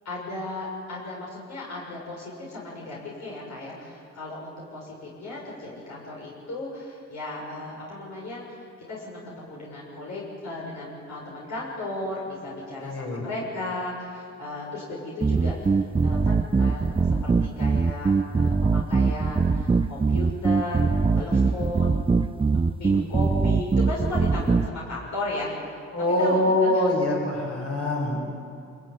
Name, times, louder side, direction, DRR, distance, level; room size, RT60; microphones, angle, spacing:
voice 1, 0.1-16.9 17.2-20.9 21.1-22.0 22.8-25.5 26.2-26.8, left 2 dB, 65° left, -4 dB, 6.9 m, -35 dB
voice 2, 12.8-13.2 25.9-28.2, left 1 dB, 50° left, -1 dB, 7.6 m, -24 dB
sound 1, 15.2-24.7, right 4 dB, 15° right, 0.6 m, -22 dB
27.0 x 16.5 x 9.8 m, 2.5 s
cardioid pair, 90°, 30 cm